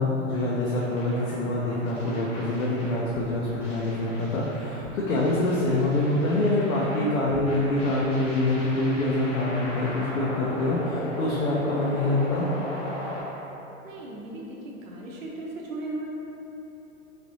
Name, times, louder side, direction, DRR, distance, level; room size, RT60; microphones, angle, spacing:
voice 1, 0.0-12.5, left 2 dB, 75° left, -5 dB, 0.6 m, -25 dB
sound 1, 0.7-13.2, left 1 dB, 15° left, 0.9 m, -38 dB
voice 2, 13.8-14.5 14.8-16.0, right 2 dB, 70° right, -3 dB, 0.8 m, -36 dB
3.2 x 2.8 x 2.6 m, 3.0 s
hypercardioid pair, 110°, 42 cm